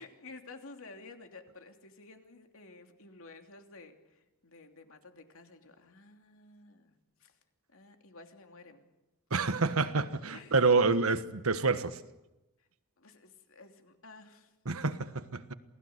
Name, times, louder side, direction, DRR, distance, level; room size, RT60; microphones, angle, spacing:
voice 1, 0.0-7.4 7.7-8.8 9.3-9.5 10.3-10.7 13.0-14.5, left 3 dB, 70° left, 3.0 m, -52 dB
voice 2, 9.3-12.0 14.6-15.5, right 4 dB, 75° right, 1.4 m, -28 dB
27.5 x 19.0 x 8.0 m
head